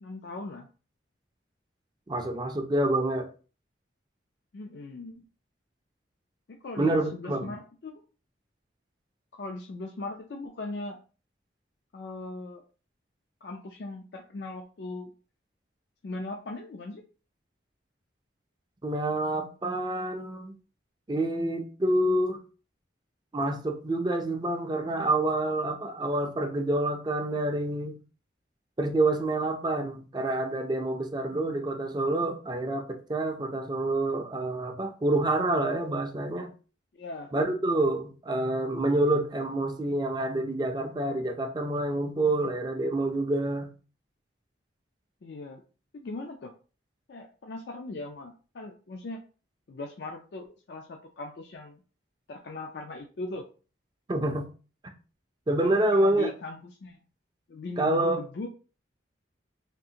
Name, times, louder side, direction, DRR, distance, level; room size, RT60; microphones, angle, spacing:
voice 1, 0.0-0.7 4.5-5.2 6.5-8.0 9.3-11.0 11.9-12.6 13.4-15.1 16.0-17.0 36.9-37.4 45.2-45.6 45.9-46.5 47.1-49.2 49.7-51.8 52.3-53.5 55.6-57.0 57.5-58.5, left 2 dB, 60° left, 0.4 m, -39 dB
voice 2, 2.1-3.3 6.8-7.5 18.8-20.5 21.1-22.4 23.3-28.0 28.8-36.5 37.3-43.7 54.1-54.5 55.5-56.3 57.8-58.2, right 2 dB, 25° right, 0.4 m, -27 dB
3.6 x 2.4 x 2.7 m
head